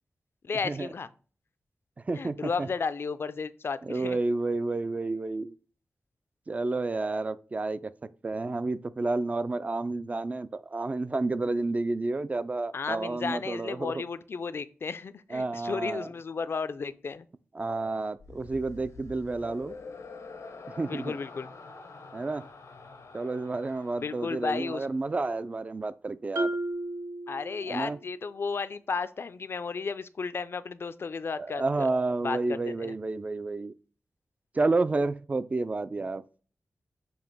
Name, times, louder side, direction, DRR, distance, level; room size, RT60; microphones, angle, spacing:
voice 1, 0.4-1.1 2.2-4.2 12.7-17.3 20.9-21.5 24.0-24.9 27.3-31.9 32.2-32.9, left 5 dB, 55° left, 0.4 m, -33 dB
voice 2, 2.0-2.7 3.8-5.5 6.5-7.9 8.2-14.0 15.3-16.1 17.5-19.8 20.8-21.2 22.1-22.5 23.1-26.5 27.6-28.0 31.4-33.7 34.5-36.2, right 3 dB, 30° right, 0.3 m, -30 dB
sound 1, 18.2-25.6, left 4 dB, 85° left, 0.9 m, -47 dB
Marimba xylophone, 26.4-28.1, right 2 dB, 75° right, 0.8 m, -33 dB
7.0 x 2.9 x 5.4 m
wide cardioid pair, 130°, 5 cm